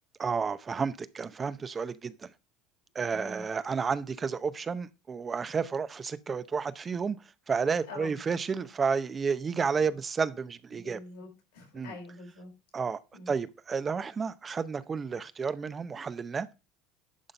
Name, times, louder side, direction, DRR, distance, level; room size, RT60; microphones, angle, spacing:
voice 1, 0.2-2.3 2.9-7.2 7.5-11.0 11.7-11.9 12.7-13.0 13.3-16.5, right 5 dB, 30° right, 0.7 m, -31 dB
voice 2, 3.1-3.4 7.9-8.2 10.7-12.5 13.1-13.3, left 2 dB, 80° left, 5.5 m, -45 dB
11.0 x 3.8 x 5.4 m
hypercardioid pair, 85°, 0 cm